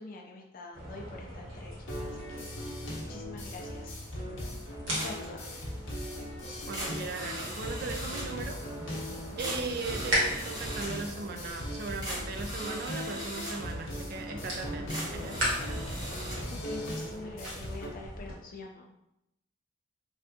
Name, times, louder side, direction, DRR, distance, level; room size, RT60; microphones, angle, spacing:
voice 1, 0.0-2.8 3.1-4.6 4.9-5.5 16.5-18.9, left 3 dB, 45° left, 0 dB, 0.4 m, -46 dB
sound 1, 0.7-18.4, equal, 75° right, 1.4 m, -39 dB
sound 2, 1.9-17.9, left 1 dB, 70° left, 0.8 m, -40 dB
sound 3, 4.9-5.3 5.7-5.8 6.2-6.3 6.7-8.5 9.1-9.2 9.4-11.1 11.7-11.8 12.0-13.7 14.7-16.4, right 1 dB, 20° right, 0.9 m, -40 dB
voice 2, 6.7-8.6 8.9-9.1 9.4-15.4, right 4 dB, 50° right, 4 dB, 0.4 m, -38 dB
3.3 x 2.6 x 2.7 m, 0.83 s
head